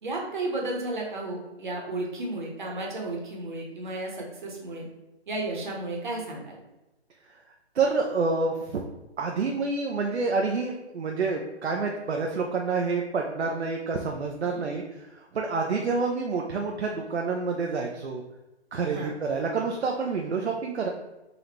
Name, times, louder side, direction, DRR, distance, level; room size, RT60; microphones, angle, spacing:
voice 1, 0.0-4.9 5.3-6.5 14.4-14.6 18.9-19.1, right 2 dB, 45° right, -1 dB, 1.1 m, -33 dB
voice 2, 7.7-8.8 9.2-18.2 18.7-20.9, right 4 dB, 75° right, 1 dB, 0.7 m, -28 dB
4.2 x 2.5 x 4.3 m, 1.0 s
hypercardioid pair, 170°, 33 cm